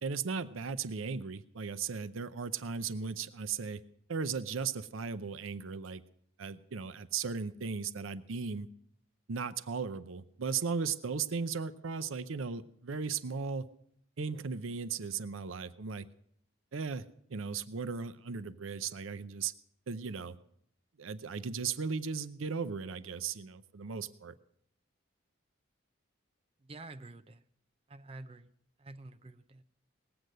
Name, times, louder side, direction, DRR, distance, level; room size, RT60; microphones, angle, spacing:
voice 1, 0.0-3.8 4.1-6.0 6.4-8.7 9.3-13.7 14.2-16.1 16.7-17.0 17.3-19.5 19.9-20.4 21.0-24.3, right 5 dB, 80° right, 12 dB, 0.6 m, -36 dB
voice 2, 26.7-27.4 27.9-28.5 28.8-29.6, right 2 dB, 30° right, 10 dB, 0.5 m, -48 dB
19.0 x 7.9 x 6.6 m, 0.68 s
head